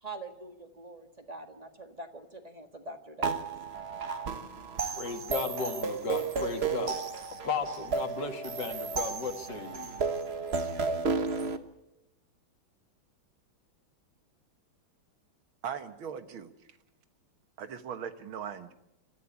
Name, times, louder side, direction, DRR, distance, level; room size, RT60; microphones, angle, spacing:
voice 1, 0.0-3.4, right 2 dB, 20° right, 6 dB, 1.7 m, -44 dB
sound 1, 3.2-11.6, right 4 dB, 40° right, 1.2 m, -33 dB
voice 2, 4.9-7.0 7.3-9.9, left 4 dB, 60° left, 7 dB, 2.4 m, -35 dB
voice 3, 15.6-16.5 17.6-18.7, right 7 dB, 90° right, 10 dB, 2.2 m, -39 dB
26.0 x 14.0 x 8.5 m, 0.92 s
omnidirectional pair, 2.2 m